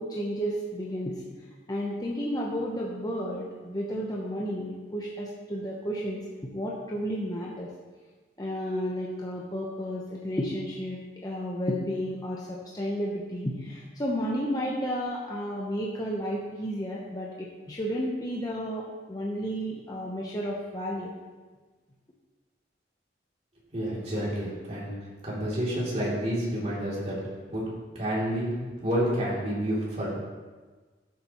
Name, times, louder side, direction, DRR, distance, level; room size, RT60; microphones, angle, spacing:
voice 1, 0.0-1.4 1.7-7.7 8.4-21.1, equal, 20° left, -3 dB, 0.9 m, -32 dB
voice 2, 23.7-24.9 25.2-27.2 27.5-27.6 27.9-28.5 28.8-30.1, equal, 40° right, -6 dB, 3.0 m, -29 dB
12.5 x 7.4 x 3.1 m, 1.4 s
head